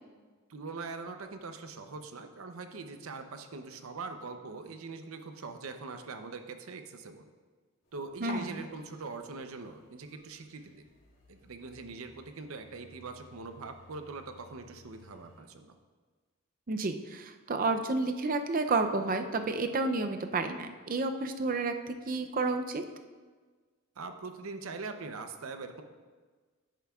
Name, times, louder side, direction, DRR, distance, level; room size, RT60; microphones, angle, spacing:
voice 1, 0.5-7.2 7.9-10.8 11.3-15.8 24.0-25.8, right 4 dB, 75° right, 7 dB, 0.6 m, -42 dB
sound 1, 7.8-15.4, left 1 dB, 80° left, 2.4 m, -53 dB
voice 2, 8.2-8.6 16.7-22.8, right 3 dB, 40° right, 7 dB, 0.5 m, -31 dB
10.5 x 9.1 x 2.4 m, 1.4 s
head